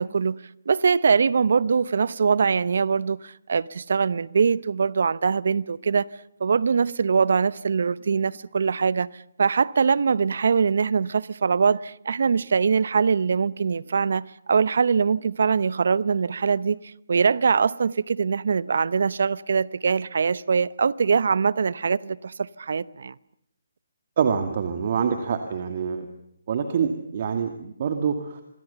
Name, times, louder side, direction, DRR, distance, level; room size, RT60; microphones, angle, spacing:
voice 1, 0.0-6.1 6.4-23.1, right 5 dB, 65° right, 0.8 m, -23 dB
voice 2, 24.2-26.1 26.5-28.4, right 6 dB, 45° right, 2.2 m, -26 dB
27.0 x 21.5 x 7.0 m
hypercardioid pair, 150°, 0 cm